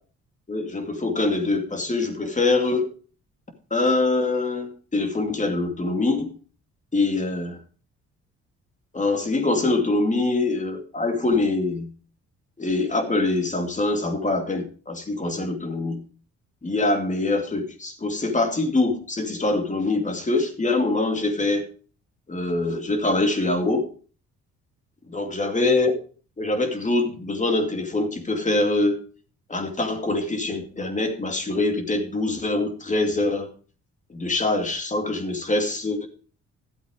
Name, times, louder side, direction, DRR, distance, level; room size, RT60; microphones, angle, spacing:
voice 1, 0.5-2.9 3.7-6.3 6.9-7.6 8.9-11.9 12.6-16.0 16.6-21.7 22.3-23.9 25.1-25.9 26.4-29.0 29.5-33.5 34.1-36.1, left 2 dB, 25° left, 5 dB, 2.4 m, -24 dB
12.5 x 7.8 x 4.9 m, 0.39 s
cardioid pair, 90°, 30 cm